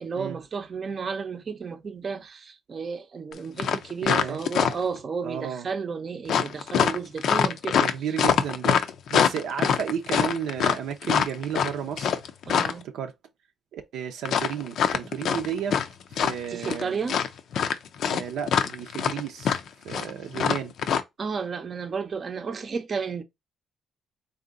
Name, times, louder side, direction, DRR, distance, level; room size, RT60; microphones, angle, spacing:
voice 1, 0.0-7.9 12.5-12.9 16.5-17.2 21.2-23.2, right 5 dB, 45° right, 0.6 m, -32 dB
sound 1, 3.3-3.4 3.6-5.0 6.3-12.8 14.2-15.9 16.1-16.8 17.1-21.0, left 7 dB, 70° left, 0.5 m, -24 dB
voice 2, 4.0-4.4 5.2-5.7 7.8-12.2 12.8-13.1 13.7-15.8 16.1-17.0 18.1-20.7, right 8 dB, 80° right, 0.6 m, -33 dB
3.6 x 2.7 x 3.8 m
cardioid pair, 90°, 0 cm